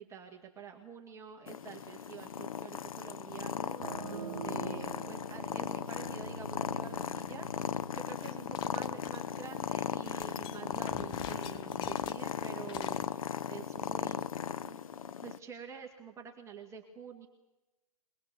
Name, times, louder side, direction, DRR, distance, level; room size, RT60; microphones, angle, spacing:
voice 1, 0.0-14.2 14.6-14.8 15.2-17.3, right 7 dB, 15° right, 1 dB, 2.0 m, -48 dB
Purr, 1.5-15.4, left 8 dB, 70° left, 0.8 m, -37 dB
sound 1, 3.8-9.2, right 5 dB, 80° right, 1.3 m, -46 dB
sound 2, 8.2-9.4 9.8-13.1, left 9 dB, 25° left, 1.0 m, -49 dB
22.5 x 20.5 x 7.0 m, 1.0 s
hypercardioid pair, 130°, 18 cm